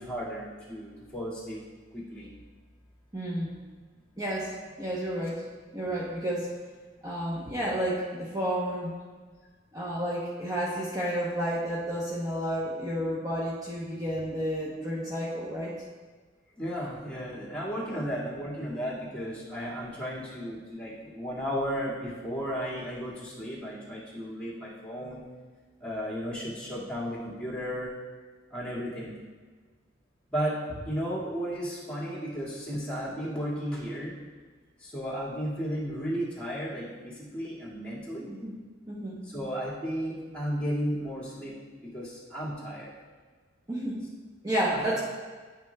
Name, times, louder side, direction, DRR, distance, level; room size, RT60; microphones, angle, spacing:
voice 1, 0.0-1.6 1.9-2.3 7.4-7.5 16.6-25.2 25.8-27.9 28.5-29.2 30.3-30.6 30.8-34.1 34.8-38.3 39.2-41.5 41.8-42.9 44.7-44.8, equal, 5° left, -8 dB, 2.1 m, -34 dB
voice 2, 3.1-3.5 4.2-4.5 4.8-5.5 5.7-6.5 7.0-9.0 9.7-15.8 17.9-18.0 38.3-38.5 38.9-39.2 43.7-44.0 44.4-45.0, equal, 20° right, -7 dB, 0.9 m, -31 dB
10.5 x 6.1 x 2.3 m, 1.5 s
head